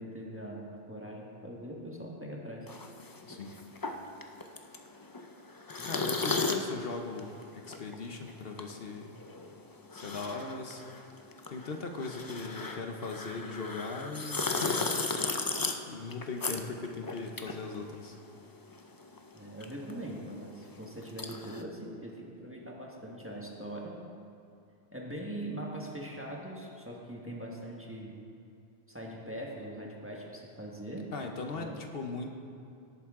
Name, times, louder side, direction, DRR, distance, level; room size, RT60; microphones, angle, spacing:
voice 1, 0.0-2.7 19.3-24.0 24.9-28.2 28.9-31.1 31.5-31.8, right 1 dB, 10° right, -3 dB, 1.4 m, -41 dB
sound 1, 2.7-18.5 18.7-21.6, left 3 dB, 30° left, 0.5 m, -36 dB
voice 2, 5.8-9.1 9.9-10.8 11.5-15.4 15.9-18.2 31.1-32.3, left 4 dB, 65° left, 4 dB, 1.0 m, -39 dB
17.0 x 9.1 x 3.7 m, 2.7 s
omnidirectional pair, 1.1 m